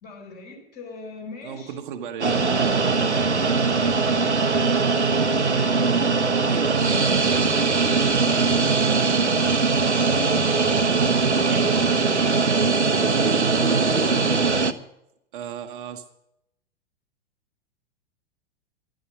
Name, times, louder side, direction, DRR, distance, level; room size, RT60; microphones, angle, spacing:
voice 1, 0.0-1.8 4.6-9.1 9.9-11.8, left 3 dB, 30° left, 1 dB, 4.7 m, -40 dB
voice 2, 1.4-4.0 6.5-7.4 15.3-16.0, right 8 dB, 45° right, 7 dB, 1.1 m, -36 dB
sound 1, 2.2-14.7, right 4 dB, 85° right, 0.9 m, -21 dB
12.5 x 11.0 x 7.6 m, 0.81 s
figure-of-eight pair, 100°, 34 cm